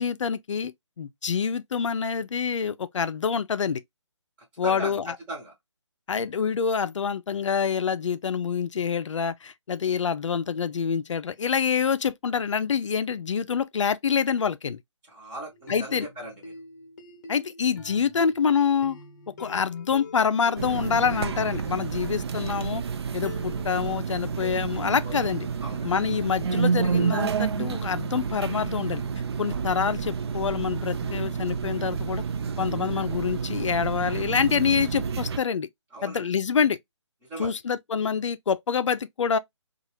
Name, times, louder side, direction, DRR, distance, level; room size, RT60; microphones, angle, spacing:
voice 1, 0.0-3.8 4.6-5.2 6.1-14.8 15.7-16.1 17.3-19.0 19.4-22.8 23.1-25.5 25.8-29.0 29.4-32.2 32.6-35.7 36.0-36.8 37.4-39.4, left 6 dB, 80° left, 0.4 m, -26 dB
voice 2, 4.6-5.0 5.3-5.5 15.1-16.5 24.7-25.3 25.6-25.9 35.9-36.3 37.3-37.5, right 1 dB, 10° right, 0.9 m, -38 dB
sound 1, 15.5-22.8 23.2-24.5, left 3 dB, 35° left, 0.8 m, -45 dB
sound 2, 20.6-35.4, right 6 dB, 55° right, 0.4 m, -29 dB
2.8 x 2.3 x 3.0 m
hypercardioid pair, 155°, 16 cm